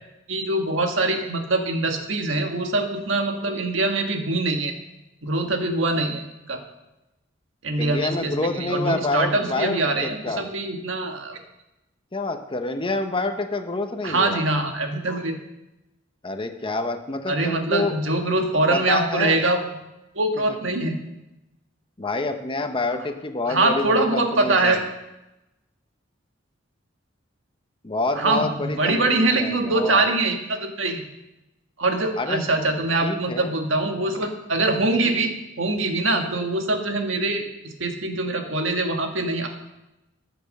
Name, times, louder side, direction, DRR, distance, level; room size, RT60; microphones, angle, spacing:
voice 1, 0.3-4.7 5.2-6.6 7.6-11.4 14.0-15.4 17.3-19.8 20.1-21.0 23.4-24.8 28.1-31.0 31.8-35.3 35.6-39.5, right 2 dB, 70° right, 4 dB, 1.6 m, -23 dB
voice 2, 7.8-10.5 12.1-14.4 16.2-17.9 18.7-19.4 22.0-24.8 27.8-30.1 32.2-32.4 33.0-33.5, left 2 dB, 25° left, 6 dB, 0.9 m, -27 dB
14.0 x 6.9 x 6.5 m, 0.97 s
head